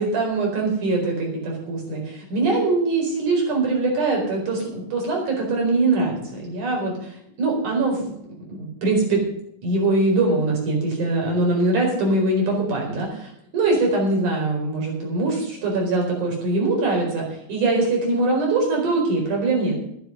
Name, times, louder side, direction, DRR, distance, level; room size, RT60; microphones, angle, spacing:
voice 1, 0.0-7.1 7.4-8.1 8.5-9.2 9.6-19.8, right 2 dB, 70° right, -1 dB, 5.9 m, -22 dB
12.0 x 10.5 x 6.6 m, 0.72 s
omnidirectional pair, 3.7 m